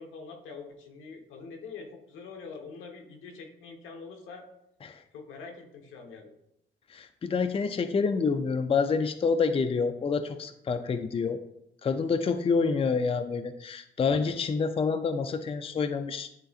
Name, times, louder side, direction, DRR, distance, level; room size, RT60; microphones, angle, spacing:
voice 1, 0.0-4.4 5.1-6.3 12.5-12.8, left 4 dB, 85° left, 3 dB, 1.2 m, -44 dB
voice 2, 6.9-11.4 11.8-16.3, left 5 dB, 30° left, 9 dB, 0.5 m, -27 dB
10.5 x 3.8 x 2.4 m, 0.80 s
cardioid pair, 90°, 20 cm